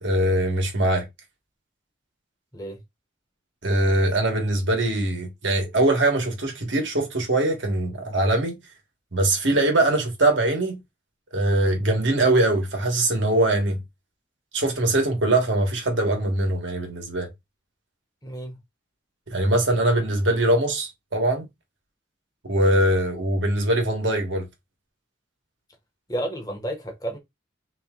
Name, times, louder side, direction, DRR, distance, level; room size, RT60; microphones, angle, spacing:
voice 1, 0.0-1.0 3.6-8.6 9.1-10.8 11.3-13.8 14.5-17.3 19.3-21.4 22.4-24.5, right 1 dB, 75° right, 1.3 m, -22 dB
voice 2, 18.2-18.5 26.1-27.2, right 1 dB, 20° left, 0.9 m, -31 dB
3.4 x 3.0 x 3.6 m
head